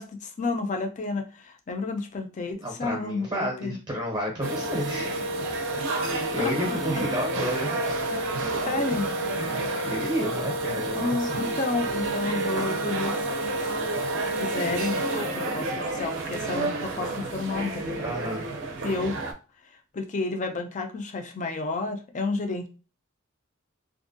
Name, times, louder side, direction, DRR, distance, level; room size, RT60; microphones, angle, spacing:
voice 1, 0.0-3.8 8.7-9.1 10.9-13.3 13.6-13.7 14.4-18.0 18.8-19.2 19.9-22.7, left 3 dB, 35° left, 5 dB, 0.5 m, -31 dB
voice 2, 2.6-5.3 6.3-7.9 9.3-11.3 18.0-18.5, equal, 20° right, -1 dB, 0.7 m, -31 dB
sound 1, 4.4-19.3, right 2 dB, 65° right, 0.5 m, -29 dB
2.5 x 2.2 x 2.5 m, 0.33 s
head